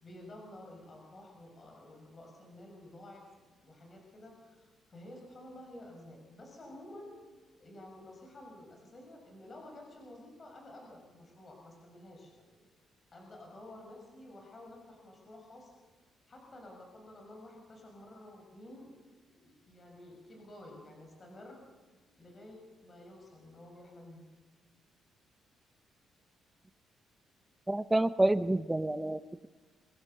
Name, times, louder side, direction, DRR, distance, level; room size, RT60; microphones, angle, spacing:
voice 1, 0.0-7.1 7.6-12.6 13.1-15.7 16.3-18.9 19.3-21.6 22.2-24.3, left 1 dB, 40° left, 1 dB, 6.1 m, -51 dB
voice 2, 27.7-29.5, right 1 dB, 10° right, 14 dB, 0.8 m, -28 dB
25.5 x 23.0 x 6.7 m, 1.3 s
cardioid pair, 90°, 0 cm